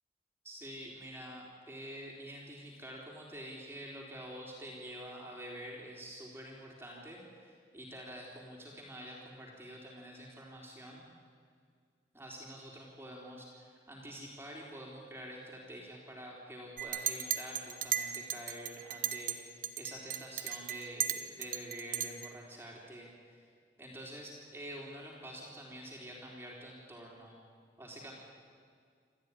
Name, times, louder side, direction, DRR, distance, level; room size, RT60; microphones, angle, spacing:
voice 1, 0.4-11.1 12.1-23.4 23.8-27.4 27.8-28.1, equal, 15° right, -2 dB, 3.8 m, -47 dB
Chink clink, 16.8-19.4 19.6-22.3, right 9 dB, 50° right, 1.3 m, -36 dB
27.5 x 14.5 x 9.9 m, 2.1 s
head